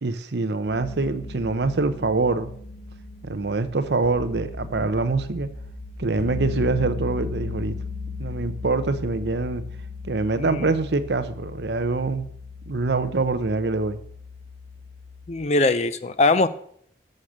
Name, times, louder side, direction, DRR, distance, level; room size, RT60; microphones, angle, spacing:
voice 1, 0.0-2.5 3.2-5.5 6.0-7.7 8.2-9.6 10.0-12.3 12.7-14.0, right 3 dB, 65° right, 12 dB, 0.7 m, -24 dB
Deep bell, 0.7-15.3, left 4 dB, 70° left, 1.4 m, -36 dB
voice 2, 15.3-16.5, left 2 dB, 40° left, 13 dB, 0.5 m, -21 dB
6.6 x 6.5 x 7.3 m, 0.65 s
head